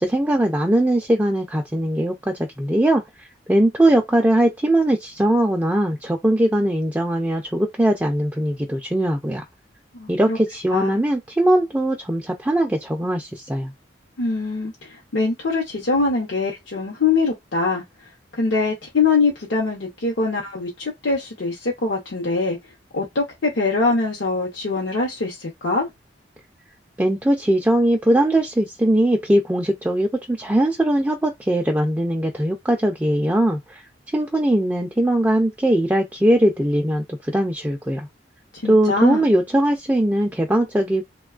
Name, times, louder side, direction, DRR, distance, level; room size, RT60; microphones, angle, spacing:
voice 1, 0.0-9.4 10.1-13.7 27.0-33.8 34.1-38.1 38.6-41.0, right 1 dB, 10° right, 0.3 m, -20 dB
voice 2, 9.9-10.4 10.7-11.0 14.2-17.8 18.4-22.6 22.9-25.9 38.5-39.3, left 3 dB, 75° left, 0.7 m, -23 dB
2.9 x 2.2 x 2.4 m
head